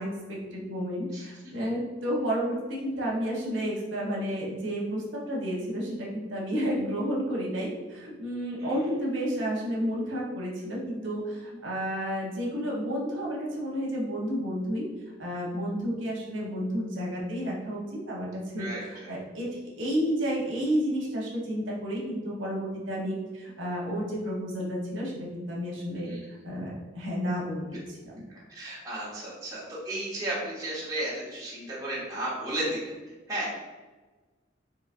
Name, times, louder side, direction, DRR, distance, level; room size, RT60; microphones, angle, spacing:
voice 1, 0.0-14.9 15.2-19.5 19.8-26.1 26.4-28.2, equal, 80° right, -3 dB, 0.8 m, -31 dB
voice 2, 18.6-19.1 26.0-26.2 28.5-32.9 33.3-33.5, right 1 dB, 20° right, -8 dB, 1.0 m, -34 dB
3.9 x 2.7 x 2.5 m, 1.3 s
head